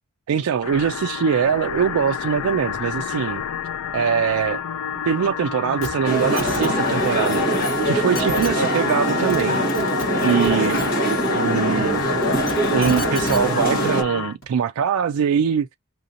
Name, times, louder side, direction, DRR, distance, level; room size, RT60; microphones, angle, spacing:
voice 1, 0.3-3.4 3.9-4.6 5.1-7.4 7.8-9.6 10.2-10.8 11.3-12.0 12.7-15.7, right 7 dB, 80° right, 0.3 m, -22 dB
sound 1, 0.6-14.4, left 7 dB, 75° left, 0.4 m, -29 dB
sound 2, 5.8-5.9 6.2-6.7 7.8-7.9 8.1-8.5 9.1-9.4 9.7-10.8 12.2-13.4 14.4-14.5, equal, 55° left, 2.3 m, -31 dB
sound 3, 6.0-14.0, right 1 dB, 40° left, 1.5 m, -22 dB
5.7 x 2.6 x 2.7 m
head